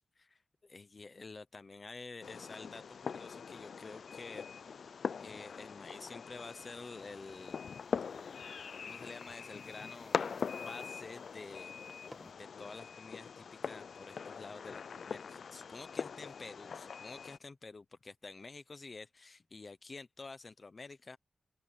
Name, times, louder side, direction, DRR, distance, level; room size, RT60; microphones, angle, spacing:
voice 1, 0.0-4.4 5.2-7.6 8.8-11.7 12.3-21.2, left 3 dB, 35° left, 0.8 m, -49 dB
Fireworks, 2.2-17.4, left 6 dB, 75° left, 0.4 m, -42 dB
sound 1, 7.0-12.3, equal, ahead, 1.5 m, -61 dB
open air
wide cardioid pair, 160°, 0 cm